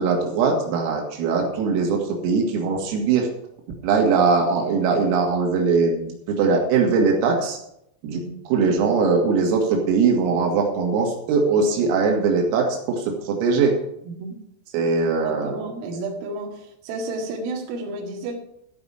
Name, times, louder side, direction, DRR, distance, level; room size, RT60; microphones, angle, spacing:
voice 1, 0.0-3.3 3.8-7.6 8.0-8.2 8.5-13.7 14.7-15.6, right 4 dB, 90° right, 1 dB, 4.5 m, -21 dB
voice 2, 14.0-14.4 15.2-18.4, right 2 dB, 70° right, 0 dB, 4.3 m, -32 dB
13.5 x 5.4 x 8.8 m, 0.77 s
omnidirectional pair, 5.9 m